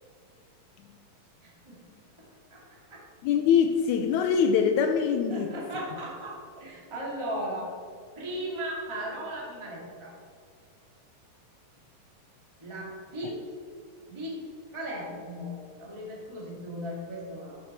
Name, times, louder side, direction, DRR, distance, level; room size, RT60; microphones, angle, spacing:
voice 1, 1.4-1.8 2.2-3.0 5.3-7.7 8.1-10.1 12.6-13.4 14.1-14.4 14.7-17.6, equal, 10° right, -4 dB, 1.6 m, -37 dB
voice 2, 3.2-5.6 13.2-13.3, left 7 dB, 90° left, 5 dB, 1.7 m, -23 dB
11.5 x 7.5 x 4.3 m, 2.2 s
omnidirectional pair, 4.0 m